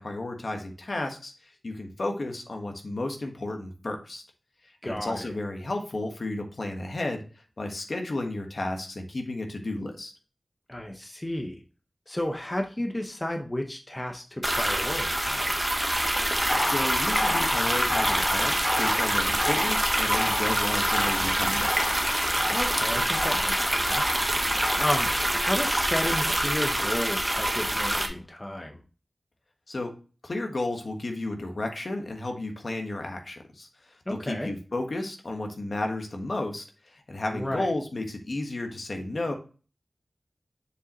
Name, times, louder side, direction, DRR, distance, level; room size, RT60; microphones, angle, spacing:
voice 1, 0.0-4.2 4.6-7.2 7.6-10.1 16.6-21.7 29.7-29.9 30.2-33.9 34.2-39.3, left 2 dB, 60° left, 3 dB, 1.3 m, -33 dB
voice 2, 4.8-5.3 10.7-11.6 12.1-15.7 22.5-24.0 24.8-28.8 34.1-34.5 37.3-37.7, left 1 dB, 25° left, 3 dB, 0.8 m, -32 dB
sound 1, 14.4-28.1, right 1 dB, 15° right, 1.1 m, -26 dB
sound 2, 16.5-25.1, left 2 dB, 80° left, 2.3 m, -33 dB
6.8 x 4.9 x 2.9 m, 0.37 s
wide cardioid pair, 70°, 0 cm